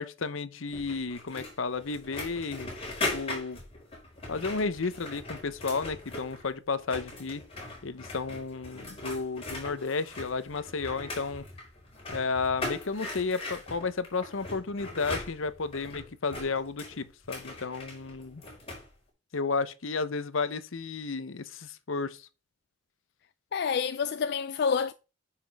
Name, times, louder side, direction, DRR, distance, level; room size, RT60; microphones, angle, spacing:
voice 1, 0.0-2.7 3.1-3.6 4.3-7.4 7.8-11.5 12.1-18.4 19.3-22.3, left 4 dB, 75° left, 0.8 m, -32 dB
sound 1, 0.7-6.5 6.8-18.9, left 2 dB, 30° left, 4.7 m, -40 dB
voice 2, 23.5-24.9, left 6 dB, 55° left, 0.4 m, -28 dB
9.1 x 5.8 x 3.5 m
head